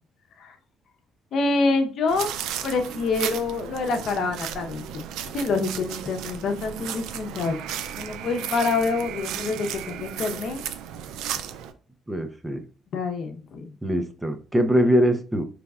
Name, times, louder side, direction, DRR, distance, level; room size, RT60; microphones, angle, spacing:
voice 1, 1.3-2.3 2.6-7.6 8.0-10.6 12.9-13.7, left 3 dB, 60° left, 5 dB, 0.8 m, -26 dB
sound 1, 2.1-11.7, right 9 dB, 85° right, 0.4 m, -34 dB
voice 2, 12.1-12.6 13.8-15.4, equal, 10° right, 7 dB, 0.6 m, -22 dB
5.1 x 3.4 x 2.3 m, 0.39 s
cardioid pair, 105°, 0 cm